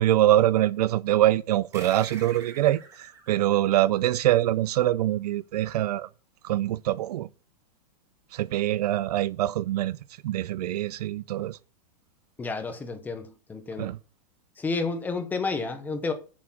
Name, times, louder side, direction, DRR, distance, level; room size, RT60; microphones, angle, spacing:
voice 1, 0.0-6.1 6.4-7.3 8.3-10.0 10.2-11.6 13.8-14.0, right 13 dB, 65° right, 0.5 m, -24 dB
sound 1, 1.7-4.7, right 3 dB, 15° right, 1.6 m, -46 dB
voice 2, 12.4-13.9 14.6-16.1, left 4 dB, 10° left, 0.8 m, -30 dB
7.3 x 6.8 x 6.1 m
supercardioid pair, 165°, 21 cm